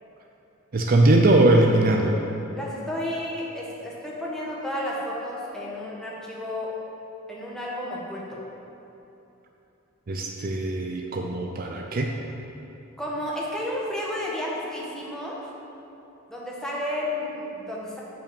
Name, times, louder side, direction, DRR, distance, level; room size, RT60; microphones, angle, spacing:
voice 1, 0.7-2.2 10.1-12.1, right 2 dB, 45° right, 2 dB, 0.5 m, -20 dB
voice 2, 2.5-6.7 7.3-8.4 13.0-15.4 16.3-18.0, left 1 dB, 5° left, -5 dB, 1.4 m, -32 dB
7.8 x 5.0 x 7.0 m, 2.9 s
head